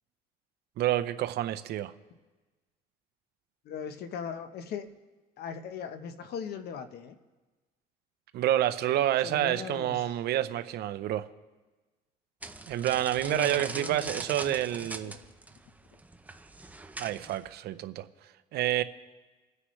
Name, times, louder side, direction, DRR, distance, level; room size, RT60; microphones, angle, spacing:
voice 1, 0.8-1.9 8.3-11.3 12.7-15.1 17.0-18.0 18.5-18.8, right 13 dB, 70° right, 12 dB, 0.7 m, -28 dB
voice 2, 3.6-4.9 5.4-7.2 9.2-10.1 13.2-15.1, left 7 dB, 70° left, 9 dB, 1.0 m, -39 dB
sound 1, 12.4-17.5, right 2 dB, 10° right, 0.7 m, -42 dB
28.5 x 9.7 x 3.2 m, 1.3 s
cardioid pair, 110°, 17 cm